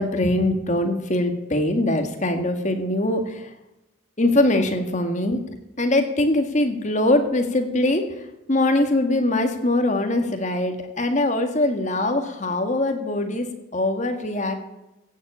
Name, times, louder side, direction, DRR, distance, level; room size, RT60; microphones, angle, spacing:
voice 1, 0.0-3.5 4.2-5.4 5.8-8.1 8.5-14.5, left 1 dB, 35° left, 6 dB, 1.8 m, -22 dB
16.0 x 7.5 x 8.5 m, 0.93 s
head